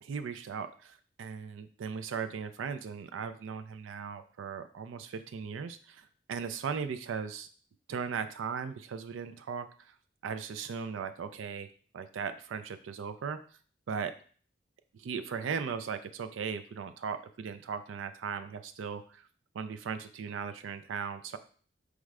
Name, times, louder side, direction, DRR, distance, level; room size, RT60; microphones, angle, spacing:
voice 1, 0.0-7.5 7.9-9.9 10.2-11.7 11.9-13.4 13.9-14.1 15.0-19.2 19.5-21.4, right 6 dB, 80° right, 10 dB, 0.4 m, -38 dB
4.9 x 2.1 x 4.7 m, 0.44 s
head